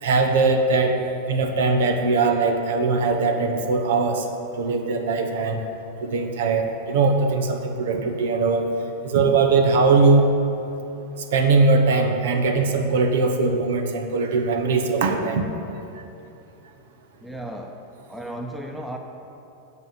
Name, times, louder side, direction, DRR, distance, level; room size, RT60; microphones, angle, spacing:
voice 1, 0.0-1.0 1.3-4.2 4.6-5.7 6.0-8.6 9.0-10.2 11.3-15.5, right 4 dB, 75° right, 5 dB, 1.0 m, -20 dB
voice 2, 17.2-17.8 18.1-19.0, right 1 dB, 5° right, 3 dB, 0.9 m, -34 dB
8.2 x 5.6 x 7.7 m, 2.8 s
hypercardioid pair, 115°, 0 cm